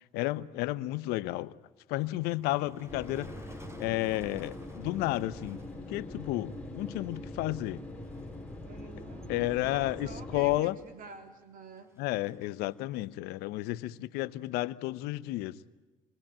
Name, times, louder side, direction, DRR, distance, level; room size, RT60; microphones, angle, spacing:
voice 1, 0.1-1.5 1.9-3.3 3.8-5.6 5.9-7.8 9.3-10.8 12.0-15.6, left 17 dB, 80° left, 1.0 m, -32 dB
Motor vehicle (road), 1.9-14.6, equal, 15° right, 6.1 m, -56 dB
sound 1, 2.9-10.6, left 1 dB, 10° left, 5.6 m, -43 dB
voice 2, 8.6-11.9, right 4 dB, 60° right, 3.3 m, -48 dB
27.5 x 22.5 x 8.9 m
supercardioid pair, 70°, 16 cm